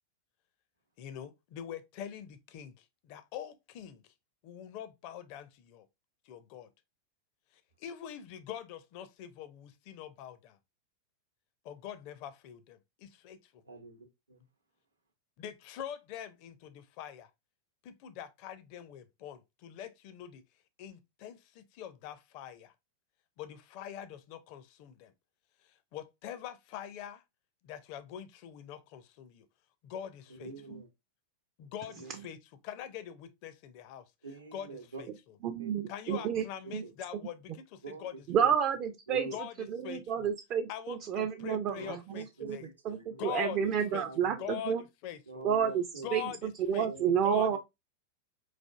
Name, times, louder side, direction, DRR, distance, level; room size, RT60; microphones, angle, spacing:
voice 1, 1.0-4.1 4.4-5.9 6.2-6.7 7.8-10.6 11.6-13.6 15.4-17.3 17.8-20.4 20.8-22.7 23.4-25.1 25.7-27.2 27.6-29.5 29.8-30.5 31.6-32.4 32.6-34.0 34.5-35.1 35.9-38.2 38.4-38.5 39.3-39.5 39.8-40.3 40.7-42.7 43.2-45.4 46.0-47.6, left 10 dB, 45° left, 0.4 m, -44 dB
voice 2, 13.6-14.4 30.3-30.9 31.9-32.2 34.2-35.0 35.6-35.7 36.1-36.3 36.8-36.9 37.8-38.5 39.1-39.4 41.7-43.3 43.7-44.2 45.3-46.4 46.8-47.1 47.5-47.6, right 4 dB, 80° right, 0.8 m, -46 dB
voice 3, 35.4-36.4 36.7-36.8 38.3-39.3 39.7-42.6 42.8-44.8 45.4-45.8 46.1-47.6, right 8 dB, 40° right, 0.4 m, -30 dB
4.2 x 2.4 x 2.3 m
figure-of-eight pair, 90°, 0 cm